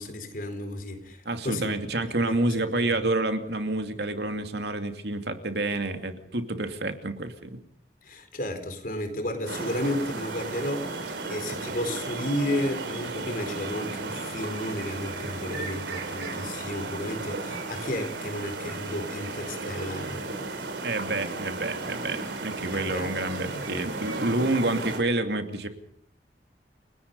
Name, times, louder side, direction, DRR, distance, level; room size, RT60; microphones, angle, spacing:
voice 1, 0.0-1.9 2.2-3.0 8.0-20.3 22.7-24.1, left 1 dB, 50° left, 7 dB, 4.3 m, -33 dB
voice 2, 1.3-7.6 20.8-25.7, right 2 dB, 70° right, 7 dB, 2.6 m, -28 dB
sound 1, 9.5-25.0, right 3 dB, 90° right, 4.2 m, -34 dB
29.5 x 18.5 x 5.5 m, 0.65 s
head